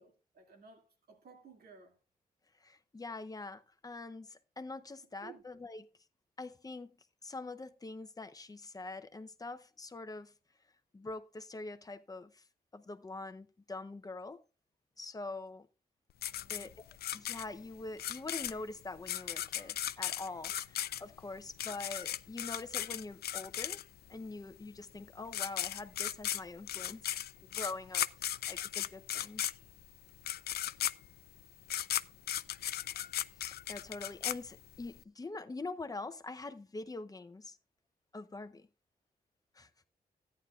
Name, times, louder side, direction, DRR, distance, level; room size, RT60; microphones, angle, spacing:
voice 1, 0.0-2.0 5.2-5.4 16.3-16.7 20.5-20.7, right 5 dB, 80° right, 2.4 m, -57 dB
voice 2, 2.6-5.8 6.4-6.9 7.2-10.3 10.9-12.4 12.7-14.4 15.0-15.7 16.5-16.9 17.1-23.8 24.1-27.1 27.4-28.1 28.5-29.4 33.5-37.6 38.1-38.7 39.5-39.7, left 3 dB, 25° left, 0.7 m, -44 dB
sound 1, 16.2-24.1 25.0-25.1 25.3-35.0, left 11 dB, 90° left, 0.4 m, -37 dB
14.0 x 9.7 x 2.4 m
cardioid pair, 105°, 16 cm